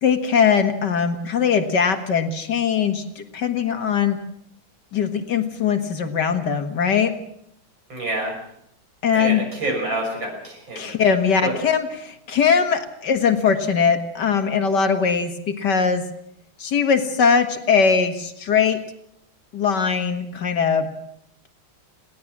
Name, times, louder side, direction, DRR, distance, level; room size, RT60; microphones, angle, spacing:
voice 1, 0.0-4.2 4.9-7.1 9.0-9.4 10.8-16.0 16.6-18.8 19.5-20.9, left 6 dB, 65° left, 7 dB, 2.3 m, -20 dB
voice 2, 7.9-8.4 9.1-10.9 11.4-11.5, right 2 dB, 75° right, 2 dB, 6.8 m, -27 dB
21.0 x 17.0 x 7.4 m, 0.73 s
omnidirectional pair, 2.1 m